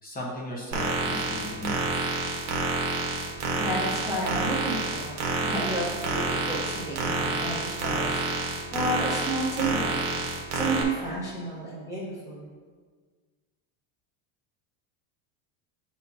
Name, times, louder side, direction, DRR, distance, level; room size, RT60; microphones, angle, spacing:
voice 1, 0.0-2.1, left 1 dB, 20° left, -4 dB, 1.1 m, -37 dB
sound 1, 0.7-10.8, right 3 dB, 70° right, 1.5 m, -28 dB
voice 2, 3.6-8.2 8.7-10.0 10.5-12.5, right 1 dB, 5° right, -7 dB, 1.0 m, -31 dB
9.3 x 4.3 x 2.8 m, 1.6 s
cardioid pair, 150°, 48 cm